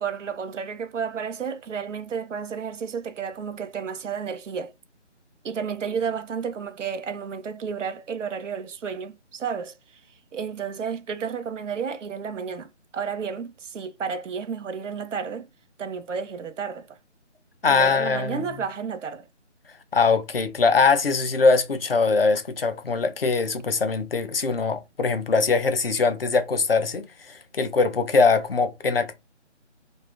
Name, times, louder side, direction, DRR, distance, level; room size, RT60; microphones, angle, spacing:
voice 1, 0.0-4.7 5.4-10.0 10.3-15.5 15.8-17.0 17.6-19.2, right 6 dB, 85° right, 0.6 m, -32 dB
voice 2, 17.6-18.4 19.9-29.2, left 4 dB, 50° left, 0.5 m, -22 dB
2.6 x 2.3 x 2.4 m
figure-of-eight pair, 175°, 36 cm